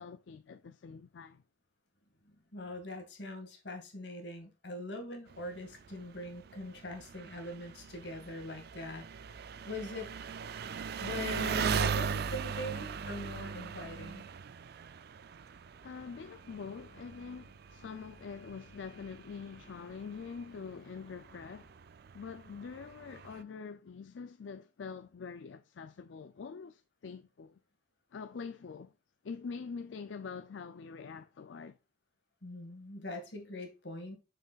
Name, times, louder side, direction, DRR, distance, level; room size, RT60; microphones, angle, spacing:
voice 1, 0.0-1.4 15.8-21.7 22.1-27.6 28.1-28.9 29.2-31.8, left 5 dB, 90° left, 0.4 m, -45 dB
voice 2, 2.5-9.1 9.6-10.1 11.0-14.2 32.4-34.2, left 1 dB, 70° left, 2.0 m, -42 dB
Engine, 5.3-23.4, right 6 dB, 60° right, 0.4 m, -40 dB
6.6 x 6.3 x 2.4 m
head